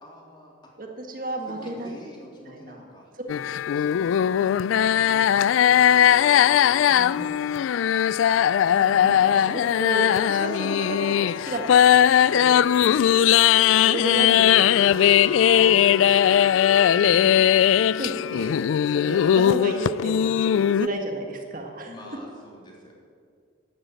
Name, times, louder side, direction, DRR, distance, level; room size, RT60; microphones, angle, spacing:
voice 1, 0.0-0.7 1.4-3.1 5.2-6.6 8.9-9.3 16.9-17.6 21.9-22.9, equal, 25° left, -2 dB, 3.4 m, -46 dB
voice 2, 0.8-2.0 2.5-2.8 3.2-3.3 3.7-5.3 6.9-7.6 8.8-13.1 13.6-17.3 17.8-21.9, right 1 dB, 45° right, 2 dB, 1.7 m, -34 dB
sound 1, 3.3-20.9, left 9 dB, 85° left, 0.3 m, -19 dB
12.0 x 11.0 x 9.1 m, 2.2 s
head